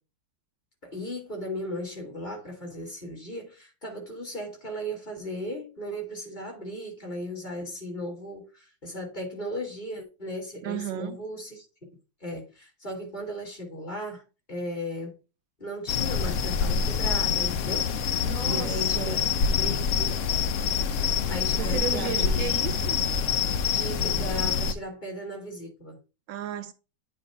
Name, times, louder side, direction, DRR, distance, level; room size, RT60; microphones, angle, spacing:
voice 1, 0.8-11.7 12.2-15.1 15.6-20.3 21.3-22.5 23.7-26.0, equal, 25° left, 2.5 m, -36 dB
voice 2, 10.6-11.2 18.2-19.3 21.6-23.1 26.3-26.7, right 9 dB, 80° right, 1.3 m, -34 dB
sound 1, 15.9-24.7, left 6 dB, 80° left, 0.6 m, -26 dB
8.5 x 3.0 x 5.3 m
omnidirectional pair, 2.1 m